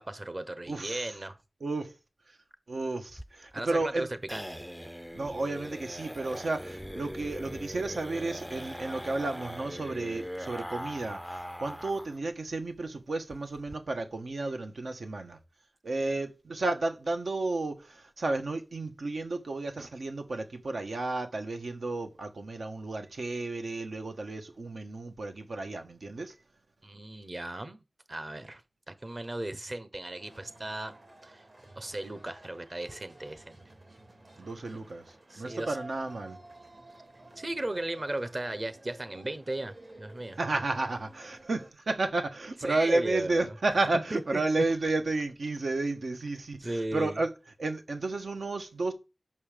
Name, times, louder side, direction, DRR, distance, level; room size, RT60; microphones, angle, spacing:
voice 1, 0.0-1.4 3.5-4.4 26.8-27.8 28.1-28.6 28.9-30.9 31.2-31.4 31.8-33.6 35.3-35.8 37.4-40.4 42.6-43.5 44.1-44.4 46.6-47.2, right 1 dB, 35° right, 1.1 m, -36 dB
voice 2, 0.7-1.2 1.6-1.9 2.3-2.4 2.7-4.1 5.1-15.4 15.8-26.3 34.4-36.4 40.4-47.3 47.6-48.9, right 2 dB, 80° right, 1.3 m, -32 dB
sound 1, 3.1-12.2 12.5-12.6 12.9-13.0 13.3-13.8, equal, ahead, 0.4 m, -41 dB
sound 2, 30.2-41.7, right 2 dB, 50° right, 2.5 m, -52 dB
6.1 x 5.5 x 6.8 m
wide cardioid pair, 90°, 0 cm